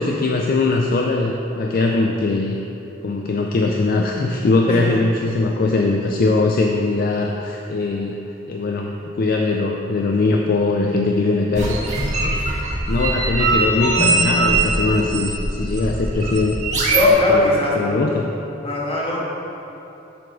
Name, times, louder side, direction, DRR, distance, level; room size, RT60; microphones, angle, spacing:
voice 1, 0.0-2.6 3.0-8.2 8.5-11.8 12.2-12.5 12.9-16.6 17.3-18.3, left 3 dB, 50° left, 1 dB, 0.4 m, -21 dB
sound 1, 11.6-17.1, right 2 dB, 40° right, 1.3 m, -21 dB
voice 2, 16.8-17.7 18.6-19.2, left 1 dB, 30° left, -6 dB, 1.5 m, -24 dB
7.8 x 3.8 x 6.0 m, 3.0 s
head